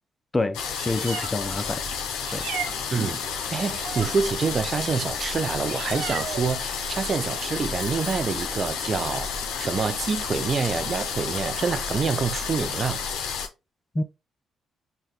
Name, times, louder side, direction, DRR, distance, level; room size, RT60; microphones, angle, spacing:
voice 1, 0.3-1.8 2.3-2.5 14.0-14.1, left 2 dB, 25° left, 0.5 m, -27 dB
sound 1, 0.5-13.5, left 6 dB, 75° left, 0.5 m, -31 dB
Meow, 0.6-13.1, right 4 dB, 75° right, 0.8 m, -39 dB
voice 2, 2.9-9.3 9.6-13.0, right 5 dB, 45° right, 0.5 m, -27 dB
Bicycle bell, 7.8-9.3, left 2 dB, 55° left, 1.1 m, -46 dB
5.5 x 2.2 x 3.0 m
hypercardioid pair, 50°, 0 cm